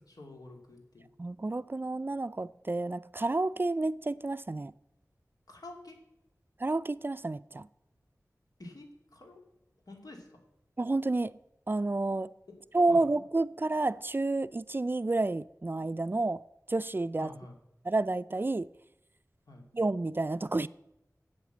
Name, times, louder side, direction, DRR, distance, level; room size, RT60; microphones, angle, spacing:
voice 1, 0.0-1.1 5.5-6.0 8.6-9.4 9.9-10.4 12.5-12.6 12.9-13.1 17.2-17.6 19.5-19.7, left 2 dB, 90° left, 2.4 m, -48 dB
voice 2, 1.2-4.7 6.6-7.7 10.8-11.3 11.7-12.3 12.7-16.4 16.7-17.3 17.8-18.7 19.7-20.7, right 2 dB, 35° right, 0.3 m, -30 dB
8.3 x 8.1 x 7.9 m
wide cardioid pair, 55°, 6 cm